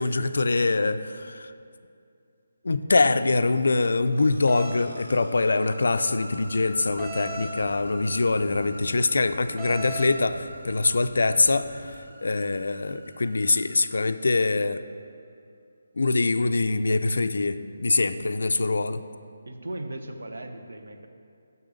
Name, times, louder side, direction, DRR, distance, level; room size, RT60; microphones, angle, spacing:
voice 1, 0.0-1.5 2.6-12.0 12.2-14.8 16.0-19.0, left 3 dB, 65° left, 11 dB, 0.4 m, -24 dB
voice 2, 2.7-3.1 18.6-18.9 19.5-21.1, right 1 dB, 70° right, 6 dB, 0.8 m, -38 dB
sound 1, 3.8-14.5, equal, 90° right, 1.2 m, -45 dB
sound 2, 4.5-4.8 7.0-7.5 9.6-10.1, right 2 dB, 15° right, 1.2 m, -37 dB
sound 3, 6.3-12.0, right 3 dB, 35° right, 1.4 m, -48 dB
6.8 x 6.1 x 6.5 m, 2.5 s
figure-of-eight pair, 150°, 0 cm